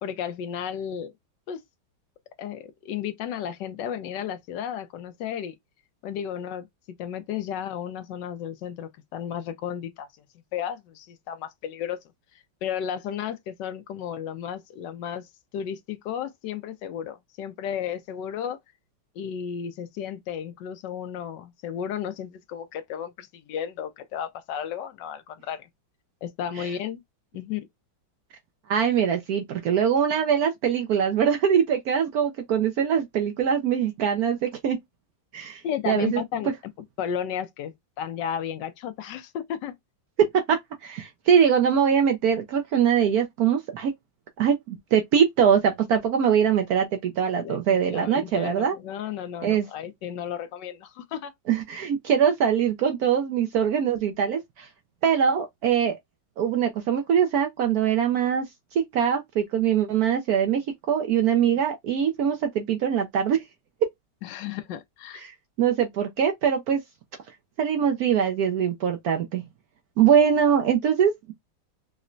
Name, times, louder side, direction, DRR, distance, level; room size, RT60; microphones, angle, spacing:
voice 1, 0.0-1.1 1.5-1.6 2.4-5.5 6.0-6.7 7.0-10.1 10.5-12.0 12.6-15.3 15.5-18.6 19.2-25.7 26.2-27.0 27.3-27.7 35.6-36.5 37.0-39.7 47.4-51.3 64.2-65.3, left 9 dB, 75° left, 1.2 m, -33 dB
voice 2, 28.7-34.8 35.3-36.2 40.2-43.9 44.4-48.7 49.4-49.7 51.5-54.7 55.0-56.0 56.4-58.5 58.7-63.4 65.1-66.8 67.6-69.4 70.0-71.3, right 8 dB, 70° right, 0.9 m, -23 dB
4.8 x 2.1 x 2.5 m
omnidirectional pair, 2.0 m